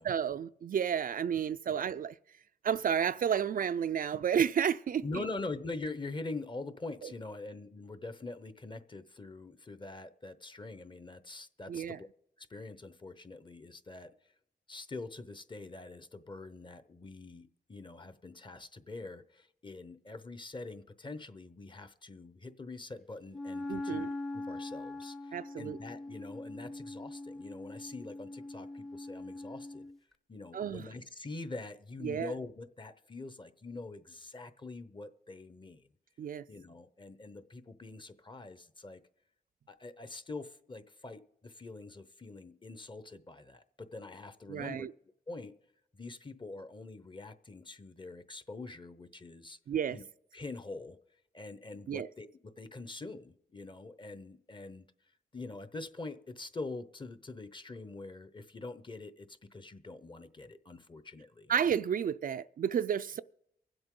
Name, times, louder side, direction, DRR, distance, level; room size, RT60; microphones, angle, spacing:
voice 1, 0.0-2.1 2.6-5.2 7.0-7.1 11.7-12.0 23.7-24.1 25.3-25.8 30.5-30.8 32.0-32.3 36.2-36.4 44.5-44.9 49.7-50.0 51.9-52.1 61.5-63.2, right 8 dB, 55° right, 0.4 m, -31 dB
voice 2, 5.0-12.1 12.4-14.1 14.7-29.9 30.3-35.9 36.5-39.0 39.7-44.9 45.3-45.6 45.9-49.6 49.9-50.0 50.3-51.0 51.3-54.9 55.3-61.5, left 3 dB, 30° left, 0.9 m, -44 dB
Wind instrument woodwind instrument, 23.3-30.0, left 2 dB, ahead, 0.6 m, -42 dB
23.5 x 7.9 x 3.8 m
cardioid pair, 75°, 17 cm